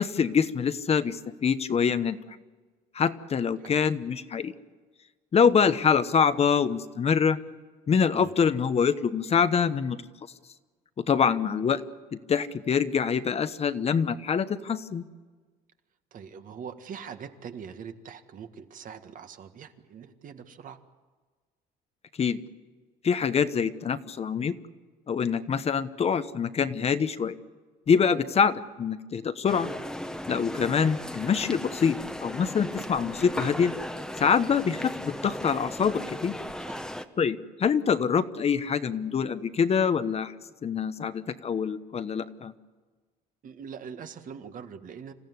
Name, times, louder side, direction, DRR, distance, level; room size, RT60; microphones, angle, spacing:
voice 1, 0.0-2.2 2.9-4.5 5.3-7.4 7.9-10.0 11.0-11.8 12.1-15.0 22.2-22.4 23.0-24.5 25.1-27.4 27.9-29.7 30.3-33.7 34.2-36.4 37.2-40.3 40.6-42.5, left 6 dB, 35° left, 12 dB, 1.0 m, -25 dB
voice 2, 16.1-20.8 36.7-36.9 43.4-45.1, right 7 dB, 50° right, 8 dB, 1.8 m, -42 dB
sound 1, 29.5-37.0, left 1 dB, 5° left, 1.1 m, -37 dB
27.0 x 15.0 x 9.6 m, 1.4 s
cardioid pair, 110°, 17 cm